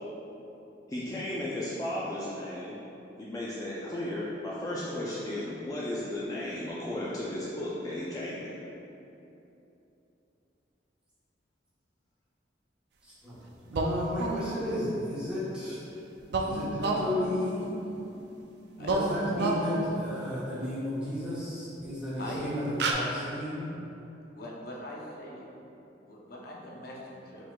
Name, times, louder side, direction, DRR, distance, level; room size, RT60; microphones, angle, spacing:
voice 1, 0.9-2.8 3.2-8.7, left 1 dB, 20° left, -7 dB, 0.4 m, -35 dB
voice 2, 13.7-15.8 16.4-17.7 18.8-22.6 22.9-23.7, left 1 dB, 5° right, -12 dB, 1.2 m, -33 dB
sound 1, 13.7-14.9 16.3-18.4 18.8-20.3 21.8-21.9 22.3-22.5 22.8-22.9, right 2 dB, 60° right, 0.4 m, -31 dB
voice 3, 24.3-25.5 26.1-27.5, left 1 dB, 55° left, -3 dB, 0.7 m, -42 dB
4.7 x 3.9 x 2.3 m, 2.9 s
head